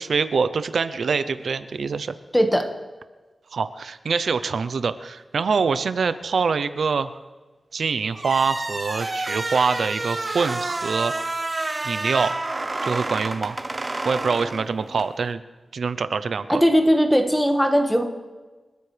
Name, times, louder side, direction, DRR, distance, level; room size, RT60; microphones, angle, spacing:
voice 1, 0.0-2.2 3.5-7.2 7.7-11.1 11.8-12.3 12.8-13.6 14.0-15.4 15.7-16.6, right 5 dB, 80° right, 12 dB, 0.6 m, -24 dB
voice 2, 2.3-2.7 16.5-18.0, equal, 5° left, 4 dB, 1.5 m, -18 dB
sound 1, 8.2-15.1, right 2 dB, 25° right, 0.7 m, -29 dB
28.0 x 13.5 x 3.3 m, 1.3 s
wide cardioid pair, 135°, 0 cm